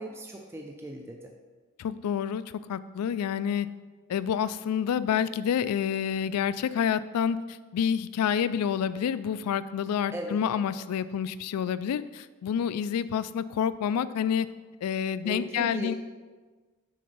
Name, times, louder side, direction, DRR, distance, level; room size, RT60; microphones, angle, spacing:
voice 1, 0.0-1.3 10.1-10.4 15.2-15.9, right 1 dB, 10° right, 2 dB, 0.4 m, -38 dB
voice 2, 1.8-2.4 2.7-3.7 4.1-14.5 14.8-15.9, left 8 dB, 80° left, 15 dB, 0.3 m, -28 dB
6.5 x 3.9 x 5.3 m, 1.4 s
head